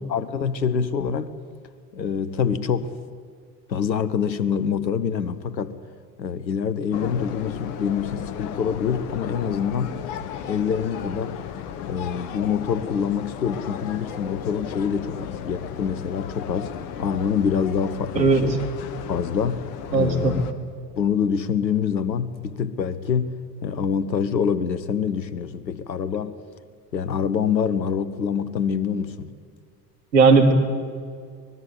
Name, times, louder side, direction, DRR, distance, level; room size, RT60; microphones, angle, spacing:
voice 1, 0.1-1.4 1.9-2.9 3.7-5.8 6.2-10.0 10.4-11.4 11.8-16.7 17.0-18.6 19.1-19.6 19.9-20.4 21.0-23.3 23.6-26.4 26.9-29.3, left 7 dB, 85° left, 1.2 m, -25 dB
sound 1, 6.9-20.5, left 9 dB, 65° left, 1.7 m, -35 dB
voice 2, 19.9-20.3 30.1-30.5, right 4 dB, 80° right, 3.1 m, -16 dB
25.0 x 20.0 x 8.7 m
figure-of-eight pair, 70°, 50 cm